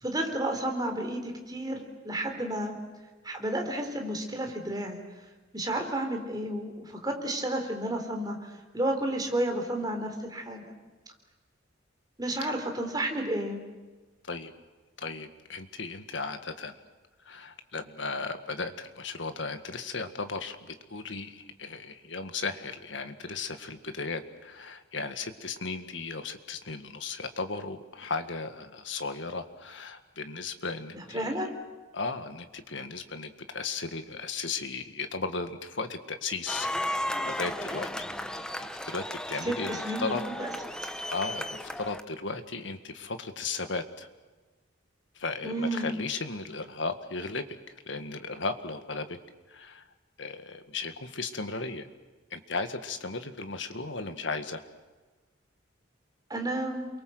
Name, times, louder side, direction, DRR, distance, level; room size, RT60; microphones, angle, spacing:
voice 1, 0.0-2.8 3.2-5.0 5.5-10.6 12.2-13.6 30.9-31.5 39.4-40.5 45.4-45.9 56.3-56.9, right 1 dB, 20° right, 3 dB, 3.7 m, -31 dB
voice 2, 15.0-16.8 17.3-31.4 31.9-40.2 41.1-44.1 45.2-47.4 47.9-49.2 49.5-49.9 50.2-51.9 52.3-54.6, left 4 dB, 70° left, 8 dB, 1.9 m, -36 dB
sound 1, 36.5-42.0, left 1 dB, 5° left, 1.0 m, -34 dB
29.0 x 23.0 x 7.9 m, 1.3 s
head